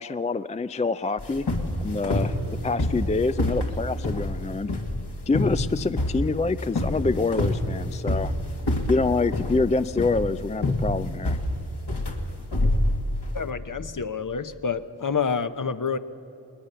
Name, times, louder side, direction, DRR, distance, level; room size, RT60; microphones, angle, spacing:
voice 1, 0.0-1.5 1.8-2.4 2.6-4.7 5.3-8.3 8.9-11.4, left 3 dB, 15° left, 13 dB, 0.4 m, -26 dB
sound 1, 1.2-13.4, left 1 dB, 65° left, 2.3 m, -27 dB
voice 2, 13.3-16.0, left 6 dB, 45° left, 11 dB, 0.9 m, -28 dB
20.5 x 19.5 x 6.8 m, 2.9 s
cardioid pair, 45°, 43 cm